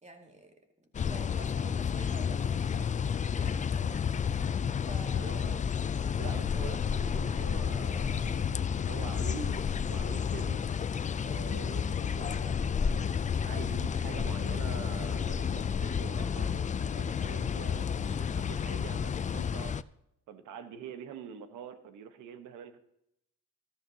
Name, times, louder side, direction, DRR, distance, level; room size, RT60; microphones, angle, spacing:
voice 1, 0.0-3.0 3.4-4.6 4.9-5.4, right 2 dB, 20° right, 4 dB, 2.1 m, -50 dB
sound 1, 0.9-19.8, left 7 dB, 25° left, 0.4 m, -31 dB
voice 2, 5.1-5.6 6.2-9.6 9.9-10.6 11.2-19.8 20.3-22.8, right 8 dB, 90° right, 10 dB, 1.2 m, -45 dB
14.0 x 13.5 x 2.8 m, 0.78 s
cardioid pair, 90°, 30 cm